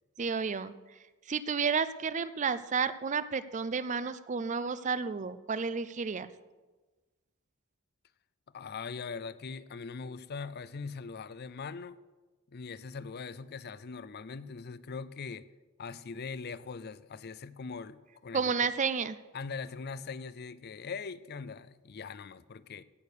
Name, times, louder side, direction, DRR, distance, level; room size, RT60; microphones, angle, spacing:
voice 1, 0.2-1.0 1.3-6.3 18.3-19.2, right 5 dB, 35° right, 14 dB, 0.5 m, -31 dB
voice 2, 8.5-12.0 12.5-15.5 15.8-18.5 19.3-22.8, left 5 dB, 50° left, 16 dB, 0.5 m, -41 dB
17.0 x 6.6 x 6.7 m, 1.2 s
head